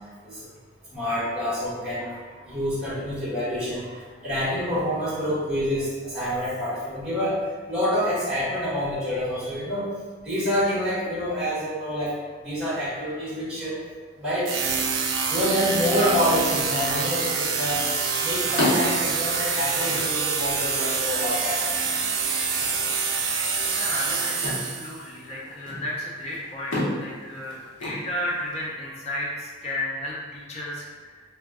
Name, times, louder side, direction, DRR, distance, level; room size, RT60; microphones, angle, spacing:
voice 1, 0.9-2.2 2.4-9.9 10.2-12.2 12.4-13.8 14.2-14.5 15.3-17.8 18.2-22.0, equal, 5° right, -11 dB, 0.9 m, -27 dB
sound 1, 14.4-25.0, right 5 dB, 70° right, 0.3 m, -26 dB
sound 2, 18.3-28.6, left 1 dB, 80° left, 1.0 m, -34 dB
voice 2, 23.6-31.2, left 1 dB, 30° left, -4 dB, 0.5 m, -33 dB
2.2 x 2.2 x 3.5 m, 1.4 s
head